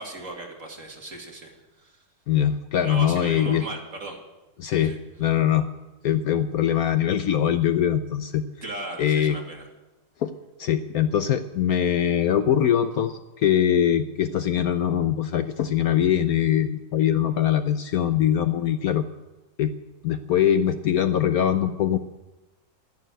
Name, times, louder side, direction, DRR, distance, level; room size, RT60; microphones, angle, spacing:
voice 1, 0.0-2.0 2.8-4.2 4.6-5.0 8.6-9.7, right 2 dB, 45° right, 1 dB, 2.7 m, -37 dB
voice 2, 2.3-3.6 4.6-5.7 6.0-8.4 9.0-9.4 10.2-10.3 10.6-19.0 19.6-19.7 20.0-22.0, left 10 dB, 65° left, 10 dB, 1.0 m, -22 dB
12.0 x 10.5 x 9.1 m, 1.1 s
omnidirectional pair, 1.9 m